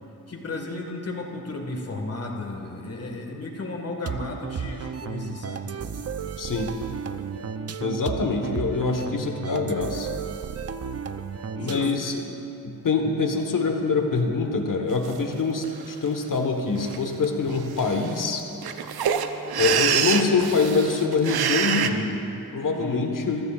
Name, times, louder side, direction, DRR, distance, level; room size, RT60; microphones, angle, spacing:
voice 1, 0.3-5.8 11.5-12.1 22.8-23.2, left 2 dB, 40° left, 1 dB, 1.8 m, -34 dB
sound 1, 4.1-12.2, right 6 dB, 45° right, 0.6 m, -33 dB
voice 2, 6.4-6.7 7.8-10.1 11.6-12.2 12.6-18.4 19.6-23.4, left 4 dB, 60° left, 4 dB, 1.3 m, -25 dB
sound 2, 15.0-15.1 15.6-16.1 16.7-17.0 17.2-17.3 17.5-21.9, right 8 dB, 90° right, 0.7 m, -26 dB
23.0 x 15.0 x 2.4 m, 3.0 s
cardioid pair, 75°, 36 cm